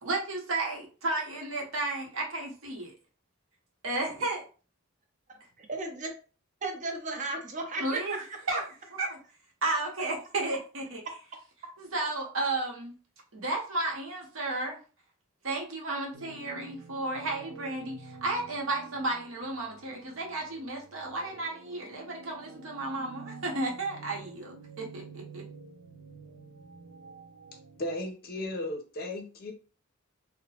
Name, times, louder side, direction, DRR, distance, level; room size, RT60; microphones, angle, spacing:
voice 1, 0.0-2.9 3.8-4.4 7.8-8.2 8.5-8.6 8.9-9.2 9.6-11.0 11.8-12.9 13.3-14.8 15.4-25.4, right 2 dB, 70° right, 0.9 m, -33 dB
voice 2, 5.3-6.1 6.6-8.3 8.5-8.6, right 3 dB, 35° right, 0.6 m, -35 dB
sound 1, 16.1-28.0, right 4 dB, 90° right, 0.4 m, -49 dB
voice 3, 27.8-29.5, left 1 dB, 45° left, 0.6 m, -35 dB
2.8 x 2.1 x 2.8 m
head